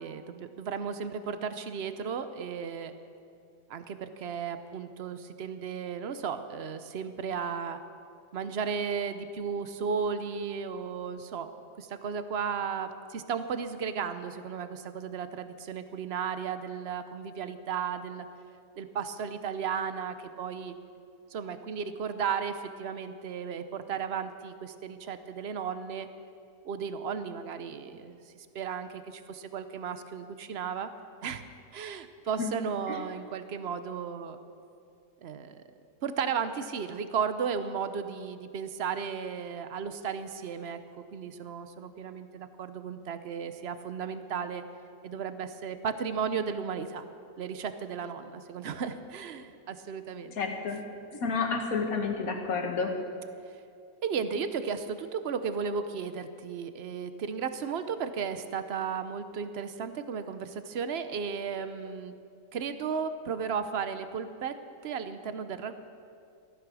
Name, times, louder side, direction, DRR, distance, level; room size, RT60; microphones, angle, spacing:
voice 1, 0.0-2.9 3.7-7.8 8.3-11.5 11.8-18.3 18.8-20.7 21.3-26.1 26.6-30.9 31.2-31.4 31.7-34.4 35.2-35.6 36.0-44.6 45.0-47.1 47.4-50.3 54.0-62.1 62.5-65.7, right 6 dB, 55° right, 10 dB, 0.7 m, -34 dB
voice 2, 50.4-50.8 51.1-52.9, left 4 dB, 50° left, 3 dB, 2.0 m, -30 dB
15.5 x 14.0 x 6.2 m, 2.4 s
omnidirectional pair, 2.0 m